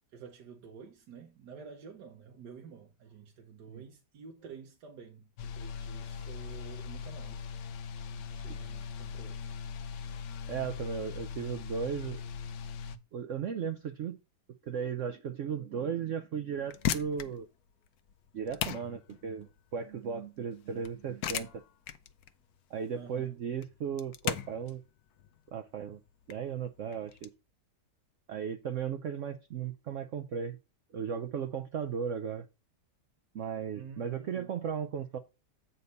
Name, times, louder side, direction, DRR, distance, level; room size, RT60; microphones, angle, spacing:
voice 1, 0.1-7.4 8.1-9.5 22.9-23.4 33.7-34.5, right 6 dB, 80° right, 1.5 m, -50 dB
sound 1, 5.4-13.0, left 6 dB, 85° left, 1.4 m, -40 dB
voice 2, 10.5-12.2 13.1-14.2 14.7-17.5 18.3-21.6 22.7-24.8 25.5-26.0 26.3-27.3 28.3-30.6 30.9-32.5 33.3-35.2, right 7 dB, 60° right, 0.8 m, -36 dB
sound 2, 16.5-27.3, left 11 dB, 70° left, 1.2 m, -38 dB
8.2 x 4.2 x 5.3 m
omnidirectional pair, 1.8 m